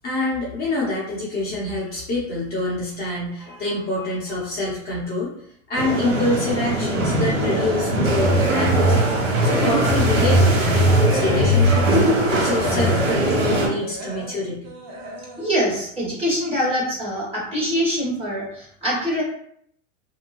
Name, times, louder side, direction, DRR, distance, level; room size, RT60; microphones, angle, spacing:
voice 1, 0.0-5.3 5.7-9.0 9.4-12.0 12.4-14.7, left 2 dB, 25° left, -7 dB, 0.9 m, -26 dB
sound 1, 5.7-13.7, right 1 dB, 85° right, 1.1 m, -19 dB
sound 2, 6.0-6.4 6.8-9.0 9.3-16.5 16.9-17.2 17.6-17.7 18.1-18.2, right 1 dB, 40° right, 0.8 m, -38 dB
voice 2, 15.4-19.2, equal, 15° right, -6 dB, 1.3 m, -24 dB
2.7 x 2.2 x 3.0 m, 0.67 s
hypercardioid pair, 115°, 39 cm